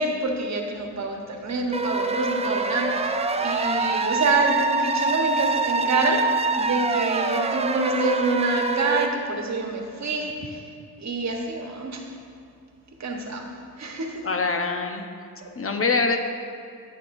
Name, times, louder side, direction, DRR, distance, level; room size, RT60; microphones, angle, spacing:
voice 1, 0.0-6.3 6.6-10.6 11.0-12.0 13.0-13.5 13.8-14.2 15.4-15.5, right 3 dB, 50° right, 2 dB, 1.2 m, -27 dB
sound 1, 1.7-9.1, right 3 dB, 20° right, 0.5 m, -25 dB
voice 2, 14.2-15.1 15.6-16.2, left 4 dB, 40° left, 5 dB, 0.7 m, -24 dB
14.5 x 5.8 x 2.6 m, 2.4 s
cardioid pair, 70°, 36 cm